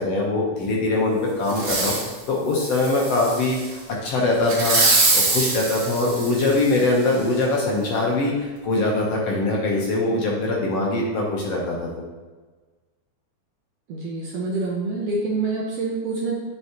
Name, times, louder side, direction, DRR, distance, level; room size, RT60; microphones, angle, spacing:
voice 1, 0.0-4.8 5.1-12.0, left 2 dB, 60° left, -3 dB, 2.0 m, -22 dB
Fireworks, 1.5-2.1 2.6-3.7 4.5-6.8 7.4-7.5, right 3 dB, 50° right, 2.7 m, -23 dB
voice 2, 13.9-16.4, right 3 dB, 70° right, -2 dB, 1.6 m, -26 dB
10.0 x 5.6 x 3.0 m, 1.3 s
omnidirectional pair, 3.6 m